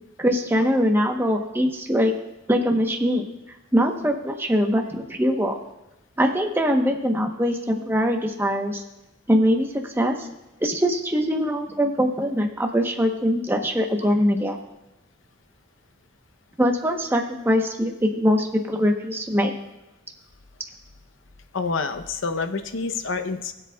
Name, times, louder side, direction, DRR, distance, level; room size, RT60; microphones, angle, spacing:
voice 1, 0.2-2.1 2.5-3.3 3.7-5.6 6.2-8.8 9.3-9.7 10.0-10.3 10.6-14.6 16.6-19.5, equal, 10° right, 2 dB, 1.0 m, -22 dB
voice 2, 21.5-23.5, left 4 dB, 70° left, 8 dB, 0.8 m, -27 dB
21.0 x 7.7 x 2.4 m, 0.97 s
head